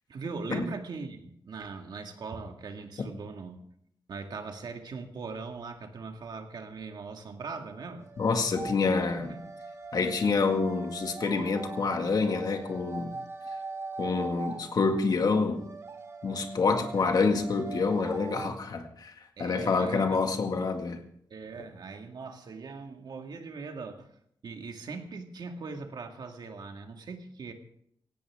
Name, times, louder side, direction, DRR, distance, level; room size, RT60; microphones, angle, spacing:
voice 1, 0.1-3.6 4.1-8.0 9.3-9.4 19.4-20.2 21.3-24.1 24.4-27.5, right 4 dB, 55° right, 5 dB, 1.9 m, -40 dB
sound 1, 7.5-18.5, right 3 dB, 30° right, 1.2 m, -41 dB
voice 2, 8.2-9.3 9.9-13.1 14.0-15.6 16.2-19.1 19.4-21.0, left 4 dB, 50° left, 5 dB, 1.9 m, -27 dB
17.0 x 17.0 x 3.6 m, 0.68 s
wide cardioid pair, 155°, 9 cm